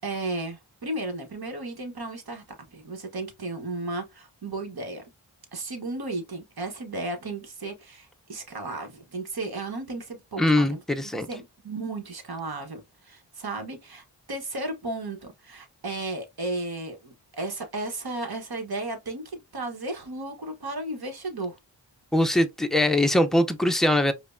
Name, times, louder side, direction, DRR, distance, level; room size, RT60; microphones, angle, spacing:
voice 1, 0.0-2.4 2.7-5.0 5.5-10.8 11.3-21.6, right 2 dB, 55° right, 1.1 m, -34 dB
voice 2, 10.4-11.3 22.1-24.1, left 1 dB, ahead, 0.5 m, -22 dB
5.0 x 2.2 x 2.5 m
cardioid pair, 45°, 46 cm